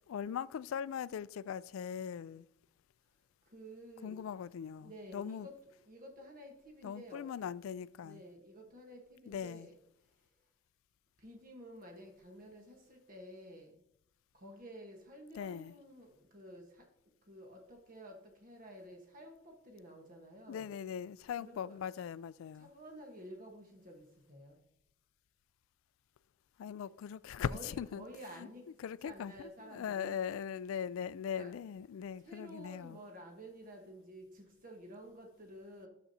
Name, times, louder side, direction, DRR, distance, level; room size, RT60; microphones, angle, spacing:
voice 1, 0.1-2.5 4.0-5.5 6.8-8.2 9.3-9.7 15.4-15.7 20.5-22.7 26.6-28.0 28.4-28.5 28.8-33.0, left 8 dB, 75° left, 0.3 m, -40 dB
voice 2, 3.4-4.3 4.8-5.6 5.9-7.3 8.0-9.7 11.2-13.8 14.3-16.9 17.3-20.7 21.4-21.8 22.5-24.6 26.8-26.9 27.3-28.7 29.0-30.2 31.4-31.5 32.2-35.9, equal, 40° right, 1.2 m, -52 dB
12.0 x 7.0 x 2.7 m
head